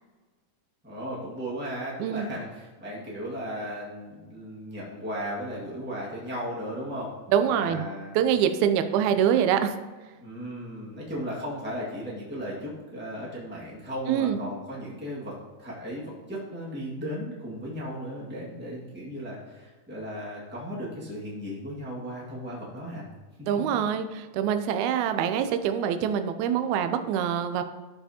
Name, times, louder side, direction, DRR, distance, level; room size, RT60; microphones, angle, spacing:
voice 1, 0.8-7.1 7.4-8.1 10.2-23.1 23.4-23.5, equal, 10° right, -6 dB, 0.6 m, -36 dB
voice 2, 7.3-7.9 8.1-9.7 14.1-14.4 23.5-27.6, right 9 dB, 85° right, 8 dB, 1.6 m, -25 dB
12.5 x 5.6 x 2.9 m, 1.3 s
omnidirectional pair, 3.9 m